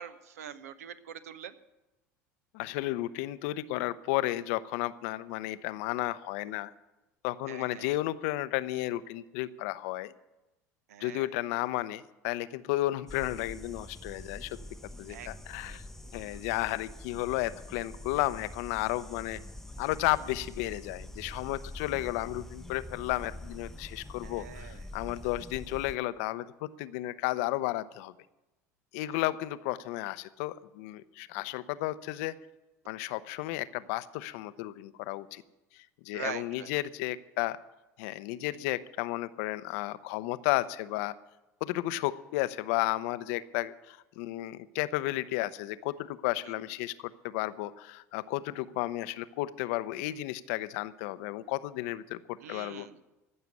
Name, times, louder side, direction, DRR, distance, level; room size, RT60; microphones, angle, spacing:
voice 1, 0.0-1.5 7.5-7.9 10.9-11.3 15.1-15.8 24.2-24.8 36.1-36.7 46.4-46.5 52.4-53.0, right 8 dB, 75° right, 13 dB, 0.9 m, -43 dB
voice 2, 2.5-6.7 7.2-10.1 11.0-14.6 15.0-15.8 16.1-19.4 19.8-28.1 28.9-32.3 32.9-35.4 36.1-37.6 38.0-41.1 41.6-46.9 47.2-52.2 52.5-52.9, left 16 dB, 65° left, 15 dB, 0.6 m, -33 dB
sound 1, 13.1-26.0, left 1 dB, 5° left, 0.7 m, -45 dB
15.0 x 6.9 x 9.7 m, 1.0 s
hypercardioid pair, 75°, 8 cm